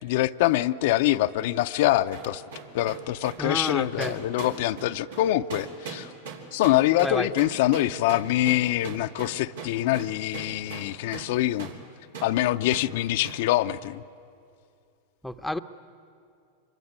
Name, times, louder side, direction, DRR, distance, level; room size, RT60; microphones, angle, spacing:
voice 1, 0.0-2.4 2.7-6.1 6.5-11.7 12.2-14.0, left 15 dB, 65° left, 9 dB, 0.6 m, -24 dB
sound 1, 2.1-11.3 11.6-11.8 12.1-12.4 12.7-12.9 13.2-13.5, right 5 dB, 85° right, 3.1 m, -40 dB
voice 2, 3.4-4.1 7.0-7.3 15.2-15.6, left 1 dB, ahead, 8 dB, 0.8 m, -30 dB
26.0 x 23.0 x 9.6 m, 2.4 s
supercardioid pair, 125°, 0 cm